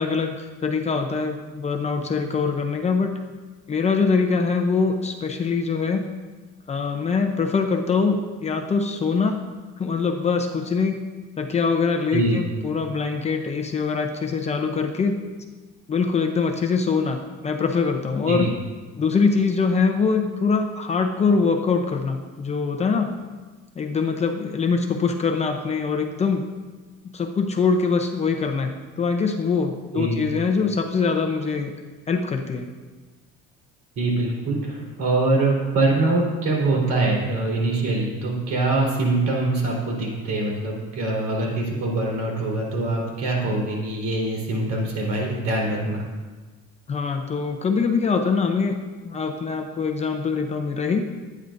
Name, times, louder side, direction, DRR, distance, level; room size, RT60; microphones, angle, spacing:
voice 1, 0.0-3.2 3.7-6.1 6.7-9.4 9.8-11.0 11.4-15.2 15.9-18.5 19.0-23.1 23.8-26.5 27.0-28.7 29.0-31.7 32.1-32.7 46.9-48.8 49.0-51.1, left 5 dB, 25° left, 4 dB, 0.7 m, -23 dB
voice 2, 34.0-46.0, right 2 dB, 65° right, -2 dB, 4.0 m, -23 dB
22.0 x 9.5 x 2.6 m, 1.3 s
cardioid pair, 175°, 29 cm